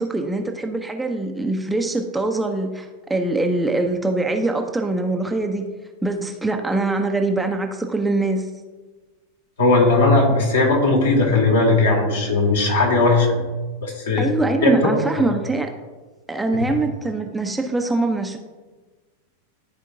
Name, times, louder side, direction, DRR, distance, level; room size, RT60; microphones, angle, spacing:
voice 1, 0.0-5.7 6.0-8.5 14.2-15.7 16.3-18.4, right 2 dB, 5° right, 4 dB, 0.6 m, -23 dB
voice 2, 9.6-13.3 13.8-14.3 14.6-14.7, left 3 dB, 65° left, -1 dB, 1.9 m, -17 dB
12.5 x 4.5 x 2.6 m, 1.3 s
figure-of-eight pair, 90°, 0 cm